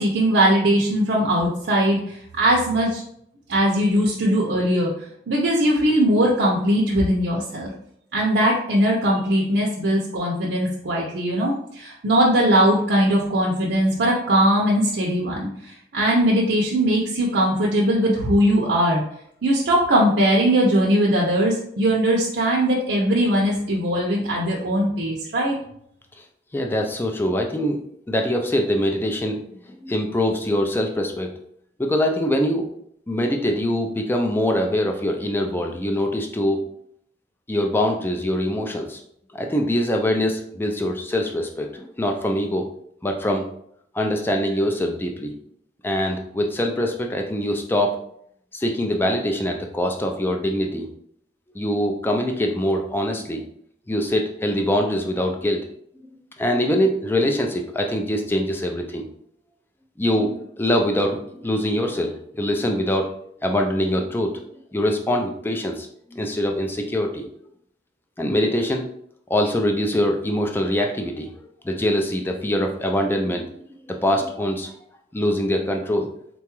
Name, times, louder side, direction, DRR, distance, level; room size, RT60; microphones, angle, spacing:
voice 1, 0.0-3.0 3.5-4.9 5.3-7.7 8.1-19.0 19.4-25.6, right 1 dB, 80° right, -3 dB, 0.6 m, -20 dB
voice 2, 26.5-27.8 28.1-31.4 31.8-32.7 33.1-36.7 37.5-39.0 39.3-42.7 43.0-43.4 43.9-45.3 45.8-48.0 48.5-50.9 51.5-53.4 53.9-55.7 56.4-59.0 60.0-63.1 63.4-64.4 64.7-67.2 68.2-68.9 69.3-71.3 71.6-73.6 73.9-74.7 75.1-76.1, equal, 10° left, 3 dB, 0.3 m, -23 dB
3.9 x 2.3 x 3.0 m, 0.70 s
head